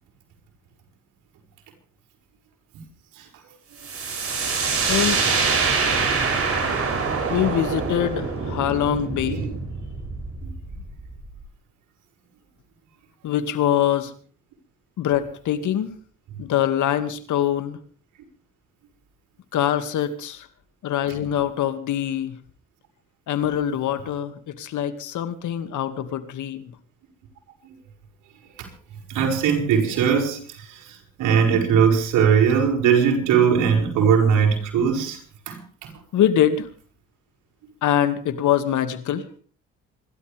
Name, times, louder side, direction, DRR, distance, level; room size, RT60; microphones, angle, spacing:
sound 1, 3.8-11.4, right 4 dB, 50° right, 7.8 m, -25 dB
voice 1, 4.9-5.2 7.3-9.5 13.2-14.1 15.0-15.9 16.4-17.8 19.5-20.5 20.8-22.4 23.3-26.7 36.1-36.7 37.8-39.3, left 10 dB, 75° left, 2.2 m, -24 dB
voice 2, 29.1-35.2 35.5-35.9, right 7 dB, 90° right, 6.3 m, -20 dB
27.5 x 13.0 x 3.5 m
cardioid pair, 90°, 30 cm